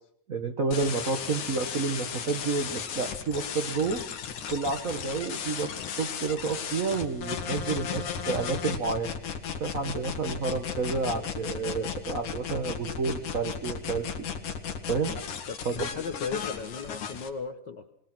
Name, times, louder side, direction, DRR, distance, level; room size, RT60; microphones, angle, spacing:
voice 1, 0.3-4.0 4.5-9.1 9.6-14.1 14.9-15.2 15.6-15.9, right 4 dB, 80° right, 7 dB, 0.7 m, -30 dB
sound 1, 0.7-17.3, left 7 dB, 85° left, 3.3 m, -35 dB
voice 2, 15.5-17.9, left 5 dB, 65° left, 6 dB, 1.1 m, -36 dB
24.0 x 19.5 x 6.0 m, 0.66 s
omnidirectional pair, 3.4 m